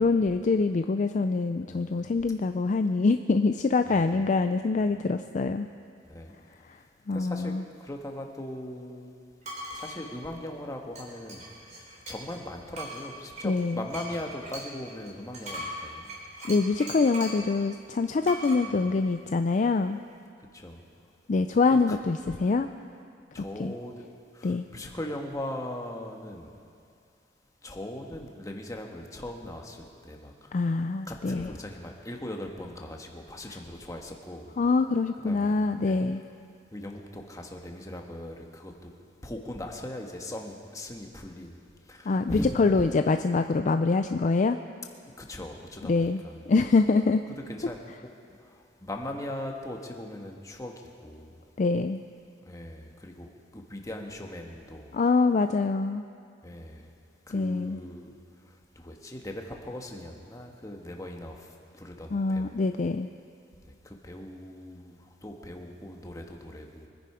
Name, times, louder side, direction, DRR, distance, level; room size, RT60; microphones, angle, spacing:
voice 1, 0.0-5.7 6.6-6.8 7.1-7.6 13.4-13.8 16.4-20.0 21.3-22.7 23.6-23.7 24.4-24.7 30.5-31.5 34.6-36.2 42.1-44.6 45.8-46.2 46.5-47.2 51.6-52.0 54.9-56.0 57.3-57.8 62.1-63.1, left 3 dB, 45° left, 8 dB, 0.4 m, -25 dB
voice 2, 1.6-2.1 3.9-4.1 4.8-4.9 6.1-6.3 7.1-7.5 7.8-9.1 9.7-11.4 12.1-16.1 18.5-18.9 20.5-20.8 21.9-22.0 22.3-22.4 23.3-24.1 24.3-26.5 27.6-30.3 31.1-34.5 35.2-36.0 36.7-38.7 39.2-41.6 41.9-42.5 45.2-46.5 47.5-47.8 48.8-50.7 51.0-51.3 52.4-53.3 53.5-54.9 56.4-56.8 57.3-58.1 58.8-61.5 61.7-62.5 63.8-65.0 65.2-66.9, left 1 dB, 20° left, 2 dB, 1.4 m, -39 dB
sound 1, 9.4-10.0 11.0-12.4 12.7-17.5 18.2-18.6, right 1 dB, 40° right, 3.8 m, -40 dB
24.5 x 10.0 x 4.9 m, 2.4 s
head